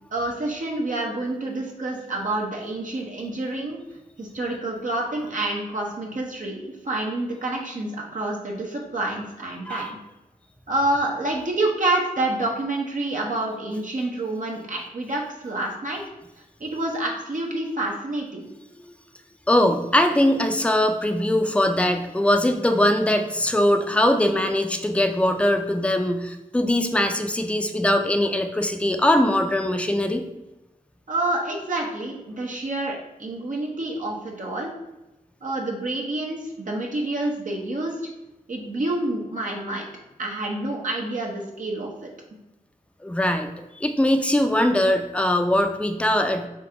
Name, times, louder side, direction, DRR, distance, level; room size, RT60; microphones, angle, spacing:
voice 1, 0.1-3.8 4.2-9.9 10.7-16.0 16.6-18.5 31.1-34.7 35.4-37.9 38.5-39.9 40.2-42.1, right 2 dB, 60° right, -1 dB, 0.9 m, -28 dB
voice 2, 19.5-30.2 43.0-43.5 43.8-46.5, left 1 dB, 10° left, 6 dB, 0.5 m, -21 dB
3.9 x 2.8 x 4.8 m, 0.98 s
cardioid pair, 45°, 15 cm